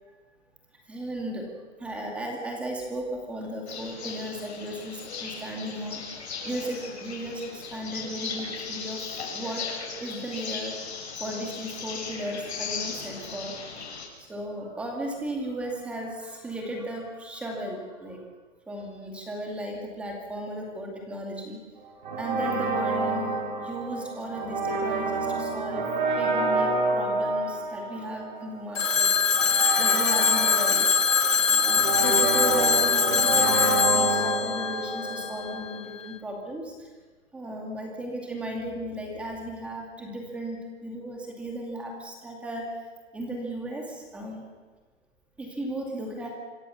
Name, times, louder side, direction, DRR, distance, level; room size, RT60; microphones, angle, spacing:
voice 1, 0.9-1.5 1.8-10.8 11.2-13.6 14.0-18.3 18.7-21.6 22.2-29.1 29.8-36.9 37.3-42.8 43.1-44.5 45.4-46.3, right 1 dB, 5° right, 0 dB, 2.4 m, -35 dB
sound 1, 3.7-14.1, left 5 dB, 60° left, 7.4 m, -37 dB
sound 2, 22.0-35.8, right 3 dB, 40° right, 5.7 m, -29 dB
Telephone, 28.8-35.6, left 6 dB, 85° left, 2.1 m, -23 dB
26.0 x 26.0 x 7.1 m, 1.3 s
hypercardioid pair, 175°, 38 cm